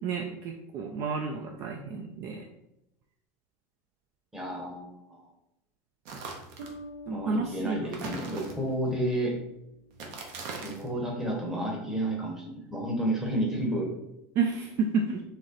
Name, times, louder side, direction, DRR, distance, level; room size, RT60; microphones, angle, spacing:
voice 1, 0.0-2.5 7.1-7.9 14.4-15.2, right 4 dB, 35° right, 3 dB, 0.4 m, -30 dB
voice 2, 4.3-5.3 7.1-9.4 10.6-13.9, right 1 dB, 5° right, -1 dB, 0.9 m, -31 dB
sound 1, 6.0-6.8 7.9-8.9 9.9-10.9, right 3 dB, 60° right, 0.9 m, -40 dB
Bass guitar, 6.6-10.1, right 1 dB, 80° right, 1.1 m, -47 dB
4.1 x 3.1 x 3.8 m, 0.86 s
supercardioid pair, 165°, 8 cm